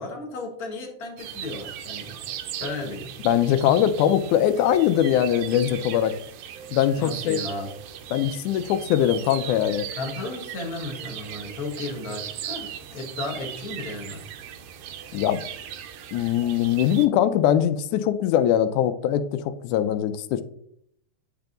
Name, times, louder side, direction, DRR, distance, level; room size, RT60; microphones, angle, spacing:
voice 1, 0.0-2.2 2.6-3.1 7.0-7.7 10.0-14.2, left 2 dB, 45° left, 1 dB, 1.2 m, -34 dB
sound 1, 1.2-17.1, right 9 dB, 75° right, 1.7 m, -38 dB
voice 2, 3.3-6.1 6.7-7.4 8.1-9.9 15.1-15.4 16.1-20.4, left 10 dB, 85° left, 10 dB, 2.0 m, -22 dB
9.7 x 3.5 x 3.8 m, 0.69 s
omnidirectional pair, 3.4 m